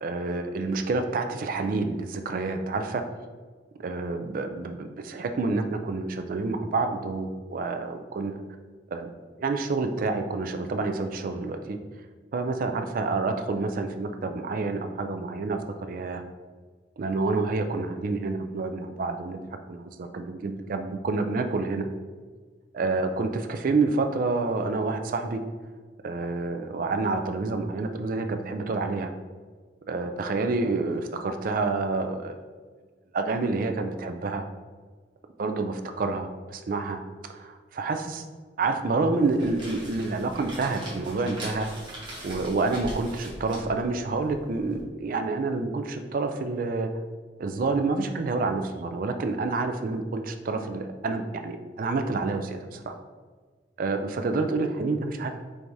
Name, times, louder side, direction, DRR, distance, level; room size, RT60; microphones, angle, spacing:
voice 1, 0.0-3.0 3.8-8.4 8.9-9.1 9.4-11.8 12.3-16.2 17.0-19.4 19.7-21.9 22.7-25.4 26.0-29.1 29.9-32.3 33.1-34.4 35.4-37.0 37.3-38.2 38.6-41.7 42.2-46.9 47.4-52.9 53.8-55.3, right 3 dB, 50° right, 6 dB, 0.3 m, -28 dB
sound 1, 39.1-44.8, right 1 dB, 25° right, 1.1 m, -41 dB
4.6 x 3.5 x 2.6 m, 1.5 s
head